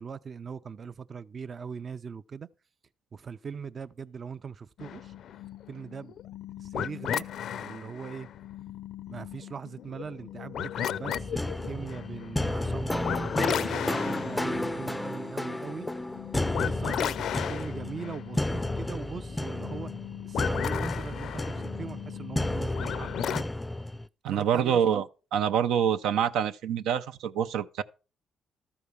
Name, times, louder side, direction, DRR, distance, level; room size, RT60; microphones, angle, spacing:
voice 1, 0.0-2.5 3.1-5.1 5.7-6.1 6.6-8.3 9.1-15.9 16.4-19.9 20.2-23.5 24.3-25.0, right 6 dB, 45° right, 0.5 m, -41 dB
sound 1, 4.8-23.4, left 9 dB, 70° left, 0.4 m, -36 dB
sound 2, 11.1-24.1, left 1 dB, 10° left, 0.4 m, -32 dB
voice 2, 24.2-25.1 25.3-27.8, right 8 dB, 85° right, 0.6 m, -26 dB
13.0 x 4.7 x 6.9 m
cardioid pair, 90°, 0 cm